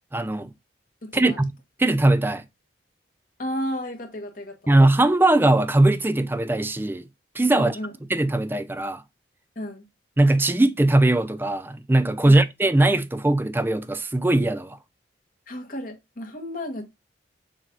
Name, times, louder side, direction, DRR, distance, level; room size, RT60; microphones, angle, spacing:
voice 1, 0.1-0.5 1.1-1.5 1.8-2.4 4.7-7.0 7.4-7.8 8.1-9.0 10.2-14.8, right 2 dB, 10° right, 0.3 m, -20 dB
voice 2, 1.0-1.4 3.4-4.6 7.5-7.9 9.5-9.8 12.2-12.4 15.5-16.9, left 1 dB, 50° left, 1.4 m, -32 dB
7.1 x 2.6 x 5.2 m
head